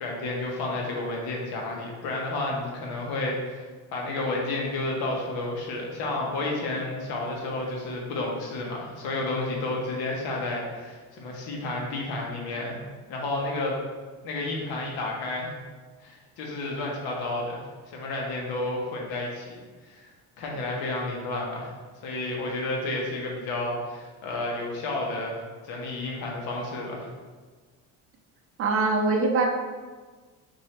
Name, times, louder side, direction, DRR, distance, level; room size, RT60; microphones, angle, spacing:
voice 1, 0.0-12.8 13.1-13.7 14.2-15.5 16.0-20.0 20.4-21.7 22.0-27.1, left 2 dB, 70° left, -1 dB, 1.0 m, -31 dB
voice 2, 28.6-29.5, right 3 dB, 40° right, 2 dB, 0.5 m, -23 dB
3.1 x 2.6 x 4.3 m, 1.4 s
cardioid pair, 155°, 38 cm